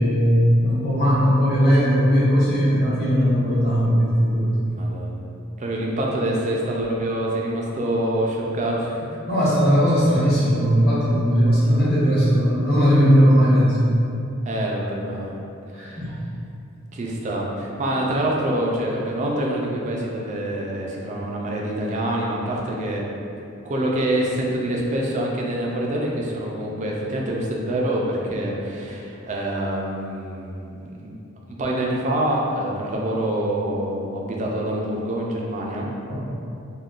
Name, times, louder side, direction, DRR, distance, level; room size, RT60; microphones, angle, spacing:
voice 1, 0.0-4.5 9.3-13.8 15.7-16.1 36.1-36.2, equal, 45° left, -9 dB, 0.9 m, -18 dB
voice 2, 4.7-5.2 5.6-9.1 14.5-15.4 15.7-16.0 16.9-23.0 23.4-31.1 31.5-35.9, right 1 dB, 35° right, -2 dB, 0.3 m, -26 dB
3.6 x 2.2 x 2.4 m, 2.7 s
head